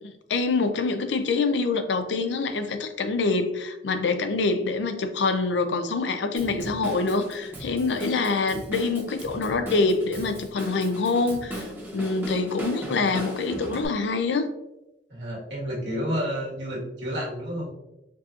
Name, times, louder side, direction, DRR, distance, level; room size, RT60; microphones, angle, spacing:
voice 1, 0.0-11.6 11.9-14.5, left 3 dB, 80° left, 8 dB, 0.5 m, -25 dB
Drum kit / Drum, 6.4-13.9, equal, 10° right, 0.9 m, -37 dB
voice 2, 15.1-17.7, equal, 75° right, -5 dB, 1.5 m, -30 dB
4.6 x 2.8 x 2.4 m, 0.93 s
head